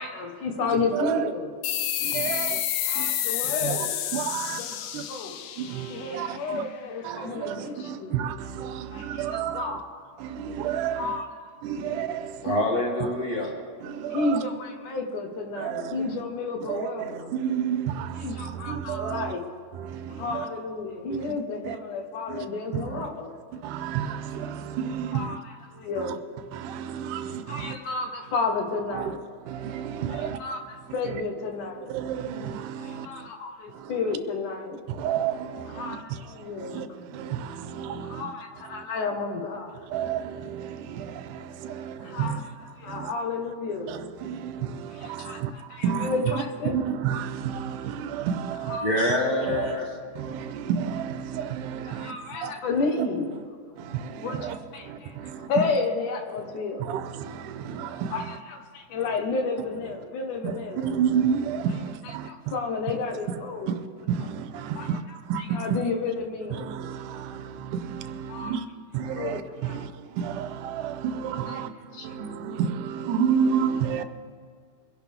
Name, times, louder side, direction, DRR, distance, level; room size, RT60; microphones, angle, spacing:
voice 1, 0.0-1.5 2.8-4.0 4.5-4.7 5.1-5.4 5.9-8.1 8.9-9.9 11.0-11.3 11.8-12.0 14.1-17.3 18.2-19.4 20.1-23.3 25.1-25.4 25.7-26.2 27.5-29.2 30.1-30.6 30.9-31.9 32.8-34.8 35.7-36.8 38.0-39.9 42.0-42.4 42.8-43.9 45.0-46.7 48.7-48.9 51.9-53.4 54.2-56.9 58.1-61.0 62.2-63.8 64.8-64.9 65.5-66.7 68.3-68.5 69.1-69.8 71.9-72.4, left 4 dB, 70° left, 2.7 m, -31 dB
voice 2, 0.6-1.3 2.0-2.6 2.9-3.1 3.4-4.6 4.9-5.1 5.6-6.7 7.0-9.8 10.2-11.2 11.6-12.6 13.0-13.1 13.8-14.5 15.6-16.2 16.6-19.4 19.7-20.5 21.1-21.8 22.3-22.5 22.7-23.1 23.5-25.4 26.0-26.2 26.5-27.8 28.9-29.2 29.4-30.4 31.0-31.2 31.8-33.3 33.7-34.2 34.9-38.3 38.6-38.8 39.9-42.5 42.8-43.1 43.8-48.9 49.4-52.5 53.0-53.1 53.8-55.8 56.3-58.4 60.4-62.5 63.3-65.8 66.5-68.7 68.9-74.0, right 8 dB, 80° right, 2.2 m, -31 dB
sound 1, 1.6-6.8, left 11 dB, 90° left, 2.3 m, -30 dB
voice 3, 12.4-13.5 48.8-49.9, left 1 dB, 35° left, 2.1 m, -25 dB
24.0 x 11.0 x 3.5 m
omnidirectional pair, 3.8 m